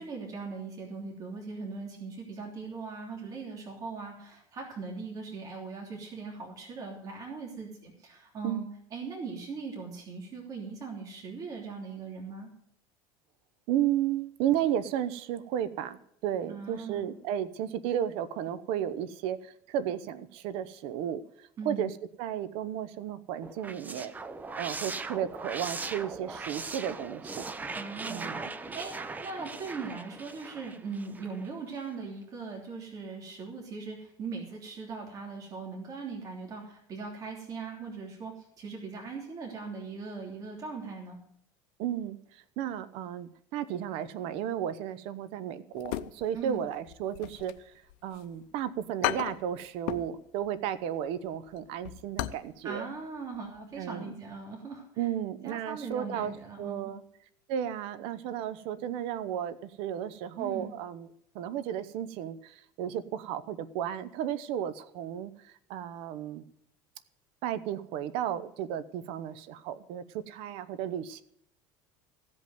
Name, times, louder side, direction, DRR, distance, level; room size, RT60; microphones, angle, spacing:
voice 1, 0.0-8.6 8.9-12.5 16.4-17.1 21.6-21.9 27.7-28.5 28.7-41.2 46.3-46.6 52.6-55.1 55.4-56.9 60.4-60.7, right 4 dB, 35° right, 0 dB, 3.2 m, -40 dB
voice 2, 13.7-24.1 24.6-27.5 28.1-28.5 41.8-47.7 48.0-52.9 53.8-54.1 55.0-57.0 57.5-61.1 61.3-66.4 67.4-71.2, right 10 dB, 65° right, 16 dB, 0.8 m, -34 dB
sound 1, 23.4-31.5, right 3 dB, 15° right, 0.7 m, -39 dB
sound 2, 45.8-46.6 46.9-48.2 48.6-48.7 49.0-50.2 50.4-50.7 51.1-52.5 52.8-52.9 53.4-53.6 53.8-53.9, left 16 dB, 75° left, 0.6 m, -35 dB
15.5 x 5.4 x 9.2 m, 0.71 s
supercardioid pair, 120°, 10 cm